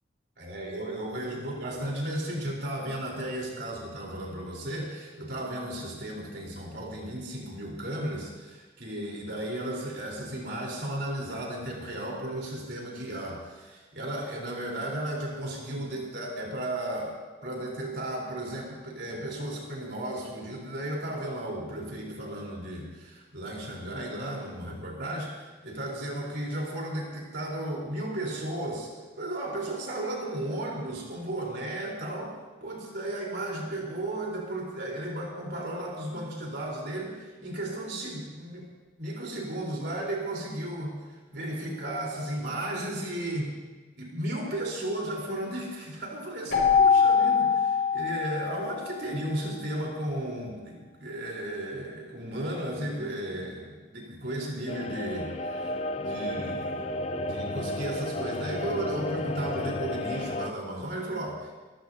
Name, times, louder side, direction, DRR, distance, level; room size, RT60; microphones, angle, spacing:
voice 1, 0.4-32.3 32.6-38.7 39.0-41.0 41.3-43.5 44.0-61.6, right 1 dB, 60° right, -2 dB, 4.1 m, -34 dB
Keyboard (musical), 46.5-49.1, left 6 dB, 60° left, 5.3 m, -23 dB
sound 1, 54.7-60.5, left 1 dB, 30° left, 0.5 m, -33 dB
26.0 x 15.0 x 2.8 m, 1.3 s
head